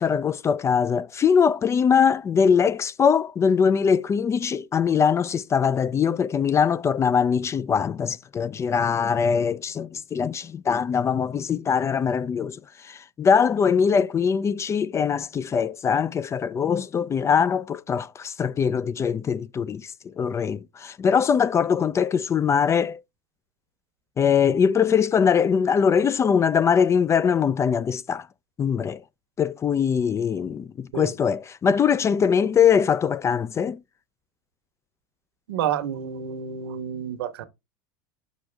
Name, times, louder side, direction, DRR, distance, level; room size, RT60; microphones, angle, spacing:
voice 1, 0.0-23.0 24.2-28.3 28.6-29.0 29.4-33.8, left 7 dB, 25° left, 0.3 m, -22 dB
voice 2, 35.5-37.4, right 9 dB, 80° right, 1.2 m, -29 dB
6.2 x 5.1 x 3.3 m
hypercardioid pair, 105°, 12 cm